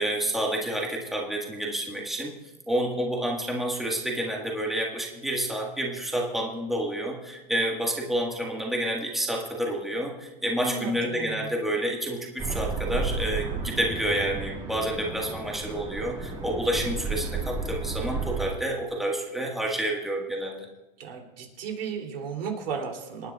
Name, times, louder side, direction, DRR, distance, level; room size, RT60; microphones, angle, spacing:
voice 1, 0.0-2.4 2.7-20.7, right 1 dB, ahead, -1 dB, 1.5 m, -29 dB
voice 2, 10.6-11.5 21.0-23.3, right 6 dB, 75° right, 2 dB, 3.0 m, -34 dB
sound 1, 12.4-18.5, right 4 dB, 15° right, 2.4 m, -32 dB
27.5 x 9.6 x 2.4 m, 1.0 s
hypercardioid pair, 125°, 29 cm